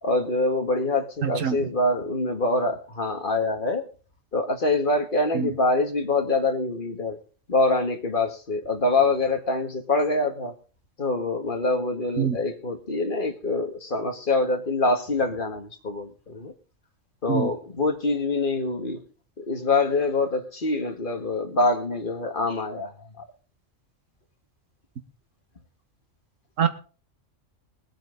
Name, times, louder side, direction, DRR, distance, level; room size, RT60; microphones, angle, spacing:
voice 1, 0.0-3.9 4.3-7.2 7.5-10.5 11.0-16.5 17.2-19.0 19.4-23.2, left 2 dB, 40° left, 5 dB, 1.9 m, -25 dB
voice 2, 1.2-1.6 5.3-5.5 12.2-12.4 17.3-17.5 26.6-26.7, right 8 dB, 80° right, 8 dB, 1.7 m, -24 dB
20.5 x 9.0 x 3.9 m, 0.37 s
omnidirectional pair, 1.3 m